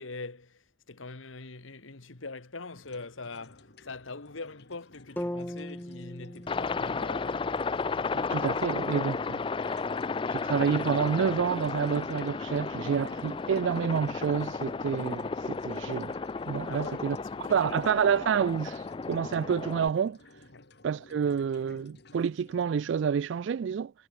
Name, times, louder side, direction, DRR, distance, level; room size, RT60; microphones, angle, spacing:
voice 1, 0.0-7.5 16.6-17.8 20.5-20.7, left 3 dB, 90° left, 1.7 m, -43 dB
sound 1, 2.7-22.7, left 2 dB, 55° left, 2.2 m, -56 dB
sound 2, 5.2-9.2, equal, 10° left, 1.1 m, -41 dB
Aircraft, 6.5-19.9, left 4 dB, 25° left, 0.3 m, -33 dB
voice 2, 8.1-9.7 10.3-16.2 16.5-17.2 17.5-18.8 19.1-20.2 20.8-23.9, right 7 dB, 65° right, 0.3 m, -28 dB
head